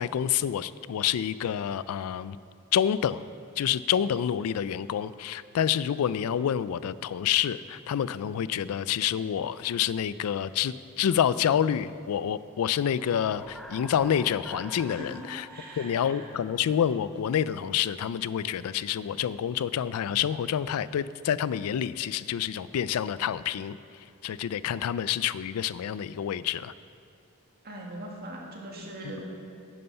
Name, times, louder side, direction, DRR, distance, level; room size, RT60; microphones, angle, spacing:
voice 1, 0.0-2.4 2.7-3.3 3.6-15.5 15.8-23.8 24.2-26.7 29.0-29.1, left 9 dB, 70° left, 17 dB, 0.3 m, -28 dB
sound 1, 12.8-17.4, equal, ahead, 0.5 m, -47 dB
voice 2, 14.9-16.2 27.6-29.2, right 1 dB, 45° right, -1 dB, 2.1 m, -41 dB
11.0 x 9.5 x 5.6 m, 2.5 s
head